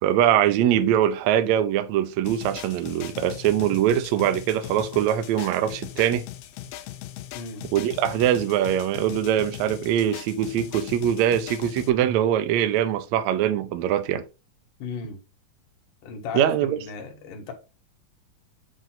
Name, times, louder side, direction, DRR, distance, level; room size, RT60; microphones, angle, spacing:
voice 1, 0.0-6.2 7.7-14.2 16.3-16.8, right 10 dB, 85° right, 1.6 m, -22 dB
sound 1, 2.2-11.9, left 13 dB, 90° left, 2.4 m, -39 dB
voice 2, 14.8-15.2 16.0-17.5, left 5 dB, 70° left, 2.9 m, -35 dB
7.5 x 2.6 x 5.7 m
omnidirectional pair, 4.0 m